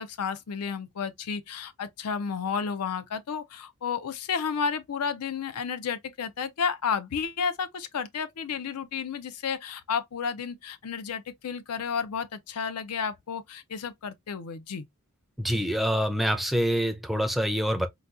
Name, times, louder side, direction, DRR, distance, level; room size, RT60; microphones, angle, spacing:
voice 1, 0.0-14.9, left 6 dB, 80° left, 0.5 m, -32 dB
voice 2, 15.4-17.9, equal, ahead, 0.4 m, -26 dB
3.9 x 2.3 x 2.4 m
head